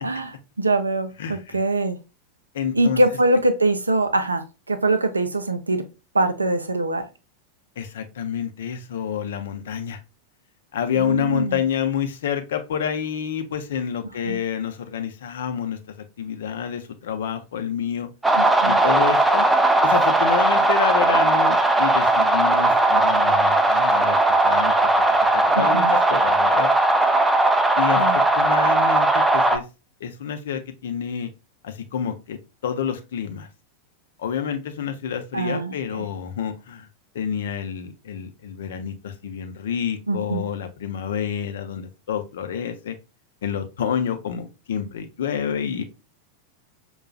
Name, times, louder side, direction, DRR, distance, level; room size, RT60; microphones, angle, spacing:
voice 1, 0.0-2.0 2.7-5.8 6.1-7.1 10.9-11.6 14.3-14.4 18.3-18.8 25.5-26.0 27.9-28.2 35.3-36.1 40.1-40.4, right 2 dB, 80° right, 0.5 m, -23 dB
voice 2, 1.2-1.6 2.5-3.0 7.8-10.0 10.7-15.8 16.2-18.1 18.6-19.5 19.8-24.7 25.3-26.7 27.8-29.6 30.0-31.3 31.6-33.5 34.2-36.9 37.1-42.9 43.4-45.8, left 8 dB, 60° left, 0.6 m, -28 dB
sound 1, 18.2-29.6, right 2 dB, 5° right, 0.4 m, -18 dB
5.5 x 2.3 x 2.3 m
figure-of-eight pair, 90°, 0 cm